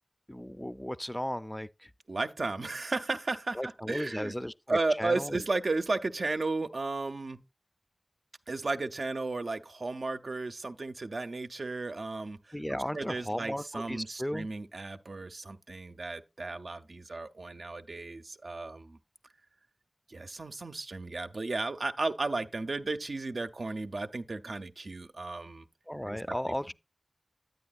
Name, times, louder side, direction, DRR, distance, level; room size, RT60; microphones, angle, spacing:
voice 1, 0.3-1.9 3.5-5.4 12.5-14.5 25.9-26.7, equal, 10° left, 0.4 m, -35 dB
voice 2, 2.1-4.3 4.7-7.4 8.5-19.0 20.1-25.6 26.1-26.5, right 3 dB, 85° right, 0.6 m, -34 dB
9.4 x 9.3 x 2.4 m
wide cardioid pair, 45°, 0 cm